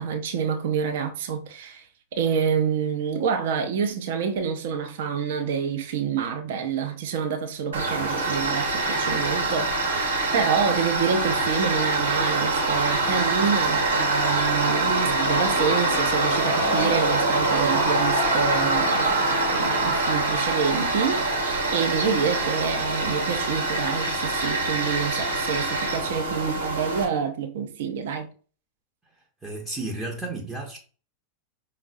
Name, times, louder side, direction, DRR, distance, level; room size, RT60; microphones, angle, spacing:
voice 1, 0.0-1.8 2.1-28.3, right 6 dB, 55° right, 0.6 m, -27 dB
Tools, 7.7-27.0, right 2 dB, 70° right, 1.0 m, -24 dB
sound 1, 15.2-24.9, left 4 dB, 65° left, 0.4 m, -35 dB
voice 2, 29.4-30.8, right 2 dB, 10° right, 0.6 m, -32 dB
5.2 x 2.0 x 2.5 m
figure-of-eight pair, 90°, 0 cm